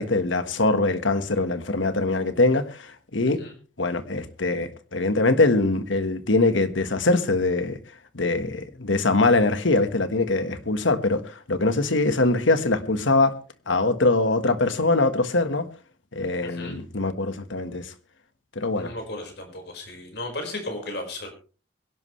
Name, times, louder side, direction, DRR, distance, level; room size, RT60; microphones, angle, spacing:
voice 1, 0.0-3.4 3.8-7.8 8.1-13.3 13.7-15.7 16.1-17.9 18.5-18.9, left 2 dB, 90° left, 1.5 m, -23 dB
voice 2, 16.4-16.8 18.8-21.3, left 2 dB, 60° left, 5.1 m, -35 dB
24.0 x 11.5 x 3.2 m
head